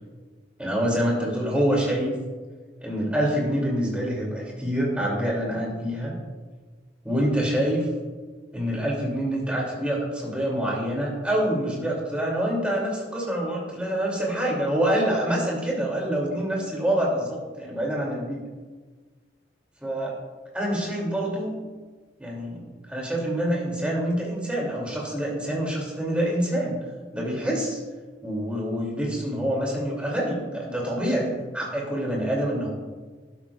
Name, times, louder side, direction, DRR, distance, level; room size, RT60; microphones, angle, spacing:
voice 1, 0.6-2.1 2.8-6.1 7.0-7.9 8.5-18.4 19.8-20.1 20.5-21.5 22.2-26.8 27.1-27.8 28.2-32.7, equal, 5° right, -4 dB, 2.7 m, -26 dB
12.0 x 11.5 x 2.4 m, 1.4 s
head